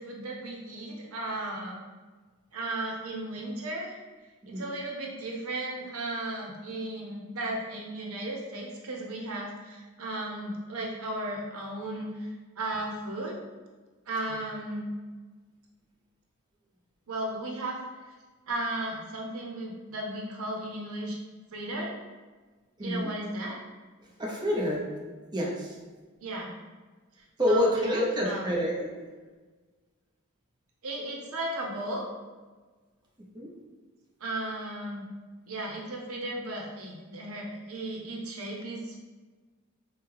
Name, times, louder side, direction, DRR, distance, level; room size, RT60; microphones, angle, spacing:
voice 1, 0.0-1.8 2.5-4.0 4.5-13.4 14.1-14.9 17.1-17.8 18.5-21.2 21.5-21.9 22.8-23.6 26.2-26.5 27.5-28.4 30.8-32.1 34.2-35.0 35.5-39.0, right 1 dB, 90° right, -1 dB, 0.8 m, -35 dB
voice 2, 22.8-23.1 24.2-24.8 25.3-25.8 27.4-28.9 33.3-33.5, left 1 dB, 20° right, -4 dB, 0.8 m, -27 dB
5.0 x 2.2 x 3.4 m, 1.4 s
head